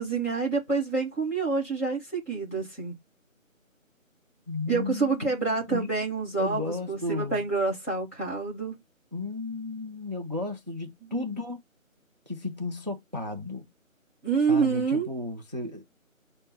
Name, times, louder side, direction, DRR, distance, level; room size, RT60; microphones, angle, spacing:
voice 1, 0.0-2.9 4.7-8.7 11.1-11.2 14.2-15.1, right 4 dB, 10° left, 1.1 m, -27 dB
voice 2, 4.5-5.9 6.4-7.4 9.1-11.6 12.3-13.7 14.5-15.8, left 3 dB, 35° right, 0.6 m, -34 dB
5.5 x 2.1 x 3.0 m
figure-of-eight pair, 170°, 41 cm